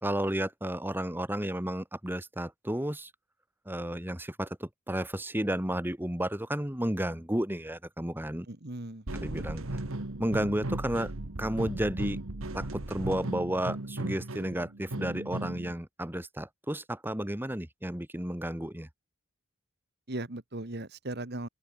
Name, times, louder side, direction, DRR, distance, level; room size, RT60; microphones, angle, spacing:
voice 1, 0.0-3.1 3.7-8.5 9.1-9.8 10.2-11.1 11.4-12.2 12.5-18.9, right 1 dB, 10° right, 1.8 m, -32 dB
voice 2, 8.5-9.0 20.1-21.5, right 2 dB, 50° right, 1.9 m, -37 dB
sound 1, 9.1-15.7, right 2 dB, 80° right, 1.7 m, -36 dB
open air
head